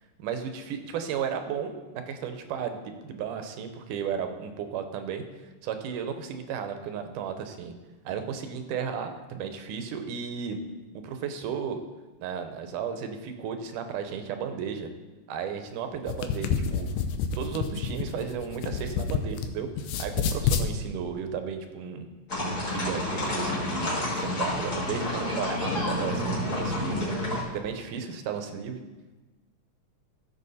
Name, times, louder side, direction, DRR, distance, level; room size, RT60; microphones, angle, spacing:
voice 1, 0.2-5.2 5.6-7.7 8.0-10.6 11.0-11.8 12.2-14.9 15.3-16.9 17.4-22.1 22.4-27.2 27.5-28.8, right 7 dB, 80° right, 7 dB, 2.4 m, -34 dB
sound 1, 15.9-19.5 19.8-20.7, left 7 dB, 85° left, 2.3 m, -28 dB
sound 2, 22.3-27.4, left 1 dB, 25° left, 2.4 m, -29 dB
15.0 x 7.1 x 4.1 m, 1.2 s
omnidirectional pair, 3.6 m